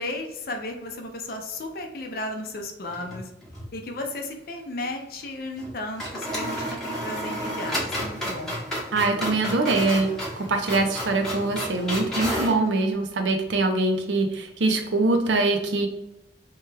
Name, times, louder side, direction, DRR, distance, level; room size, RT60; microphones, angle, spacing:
voice 1, 0.0-3.3 3.7-8.5, left 2 dB, 55° left, 3 dB, 0.5 m, -34 dB
sound 1, 2.9-3.7 4.0-4.1 5.6-5.7 6.0-12.6, equal, ahead, 0.8 m, -31 dB
voice 2, 8.9-15.9, right 2 dB, 85° right, 4 dB, 0.5 m, -23 dB
2.9 x 2.3 x 3.2 m, 0.92 s
head